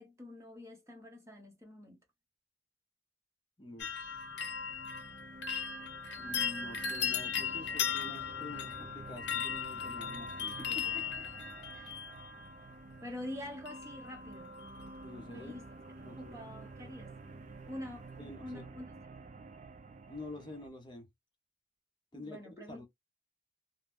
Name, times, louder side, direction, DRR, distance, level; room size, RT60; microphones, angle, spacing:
voice 1, 0.0-2.0 10.6-11.3 11.7-11.9 13.0-14.5 15.3-15.7 16.2-17.1 17.7-18.1 18.4-18.9 22.1-22.9, left 1 dB, 15° right, 0.8 m, -46 dB
voice 2, 3.6-4.3 6.2-10.9 15.0-15.6 16.0-16.4 18.2-18.6 20.1-21.1 22.1-22.4 22.7-22.9, left 2 dB, 25° left, 0.6 m, -48 dB
sound 1, 3.7-20.7, right 3 dB, 40° right, 0.3 m, -51 dB
sound 2, 3.8-12.7 13.7-14.2 14.4-15.0 15.3-15.4, left 7 dB, 80° left, 0.7 m, -37 dB
2.5 x 2.2 x 3.3 m
head